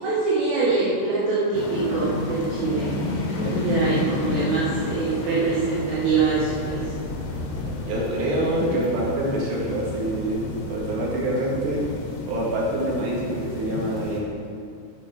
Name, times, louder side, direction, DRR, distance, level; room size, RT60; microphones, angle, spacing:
voice 1, 0.0-3.0 3.3-6.8, right 4 dB, 60° right, -8 dB, 2.2 m, -24 dB
sound 1, 1.5-14.2, left 3 dB, 70° left, 3.3 m, -31 dB
voice 2, 7.9-10.4 10.7-11.8 12.3-14.2, right 1 dB, 90° right, -4 dB, 4.3 m, -26 dB
8.8 x 8.1 x 5.9 m, 2.3 s
omnidirectional pair, 4.8 m